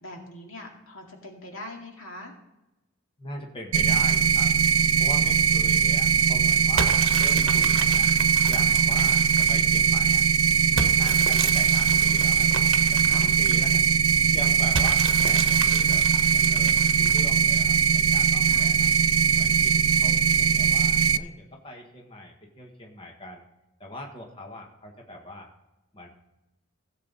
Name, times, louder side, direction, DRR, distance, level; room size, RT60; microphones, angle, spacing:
voice 1, 0.0-2.3 8.7-9.0 10.7-11.0 18.5-18.8, left 1 dB, 80° left, 1 dB, 2.3 m, -42 dB
voice 2, 3.2-4.5 5.0-8.1 8.5-10.2 10.7-12.5 12.9-13.9 14.3-18.9 19.3-23.5 23.8-25.5 25.9-26.1, left 1 dB, 25° left, 0 dB, 1.5 m, -40 dB
sound 1, 3.7-21.2, right 6 dB, 90° right, 0.4 m, -21 dB
sound 2, 6.8-9.7 10.8-13.8 14.7-17.4, right 5 dB, 70° right, 0.9 m, -33 dB
16.0 x 7.7 x 4.0 m, 0.97 s
head